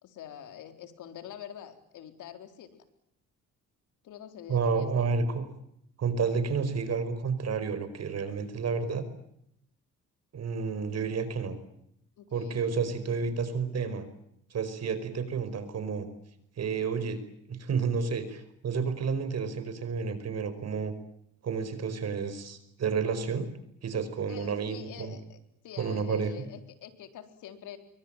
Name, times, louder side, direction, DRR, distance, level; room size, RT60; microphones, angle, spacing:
voice 1, 0.0-2.8 4.0-5.1 12.2-12.7 24.3-27.8, left 10 dB, 85° left, 7 dB, 4.0 m, -46 dB
voice 2, 4.5-5.4 6.0-9.0 10.3-11.6 12.3-14.1 14.5-16.1 16.6-17.2 17.5-20.9 21.4-23.5 23.8-25.2 25.8-26.3, right 5 dB, 55° right, 11 dB, 5.1 m, -30 dB
26.0 x 24.0 x 9.1 m, 0.75 s
cardioid pair, 90°, 30 cm